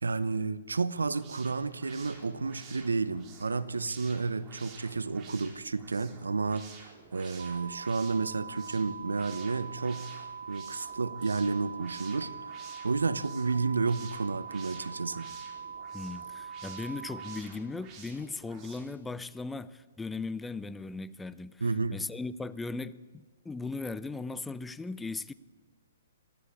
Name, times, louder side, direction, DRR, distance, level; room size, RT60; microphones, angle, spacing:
voice 1, 0.0-12.5 12.8-15.3 21.6-22.0, right 4 dB, 85° right, 0.9 m, -31 dB
sound 1, 1.0-19.0, right 5 dB, 30° right, 4.2 m, -52 dB
sound 2, 7.4-17.4, right 6 dB, 70° right, 2.2 m, -43 dB
voice 2, 15.9-25.3, left 3 dB, 10° left, 0.6 m, -38 dB
22.0 x 14.5 x 8.5 m
hypercardioid pair, 130°, 0 cm